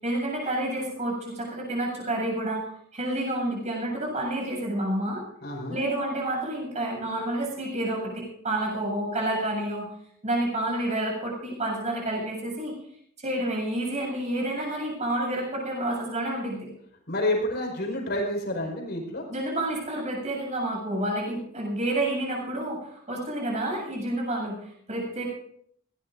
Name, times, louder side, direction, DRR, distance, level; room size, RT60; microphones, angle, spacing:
voice 1, 0.0-2.6 2.9-5.2 5.7-9.9 10.2-12.7 13.2-16.7 19.3-25.3, right 1 dB, 35° right, -1 dB, 7.9 m, -29 dB
voice 2, 5.4-5.8 17.1-19.2, left 1 dB, 55° left, 1 dB, 5.3 m, -29 dB
21.5 x 18.0 x 2.7 m, 0.67 s
head